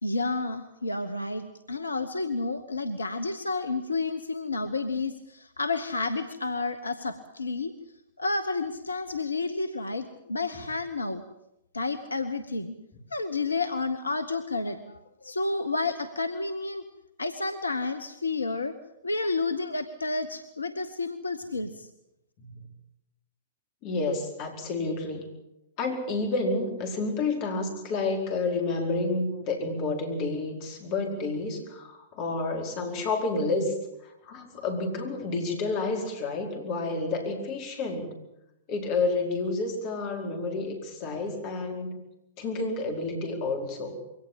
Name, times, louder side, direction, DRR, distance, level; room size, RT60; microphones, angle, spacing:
voice 1, 0.0-7.7 8.2-11.2 11.7-12.8 13.1-16.8 17.2-18.7 19.0-21.9, left 3 dB, 85° left, 11 dB, 1.1 m, -30 dB
voice 2, 23.8-25.3 25.8-33.7 34.0-38.2 38.7-41.9 42.4-44.0, left 3 dB, 40° left, 4 dB, 4.7 m, -30 dB
22.5 x 18.0 x 7.5 m, 0.86 s
figure-of-eight pair, 105°, 0 cm